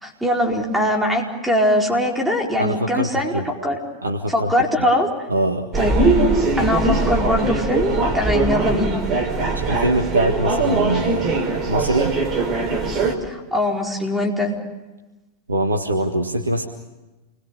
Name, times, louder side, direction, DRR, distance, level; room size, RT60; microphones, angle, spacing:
voice 1, 0.0-3.8 4.3-5.1 5.7-6.3 6.6-9.0 13.2-14.6, left 1 dB, 5° right, 1 dB, 4.6 m, -21 dB
voice 2, 2.6-3.5 4.0-4.5 4.8-4.9 5.3-5.7 9.4-12.1 15.5-16.7, right 1 dB, 75° right, 3 dB, 1.6 m, -23 dB
sound 1, 5.7-13.1, right 3 dB, 30° right, 4.4 m, -21 dB
28.5 x 21.5 x 6.8 m, 1.1 s
figure-of-eight pair, 90°, 0 cm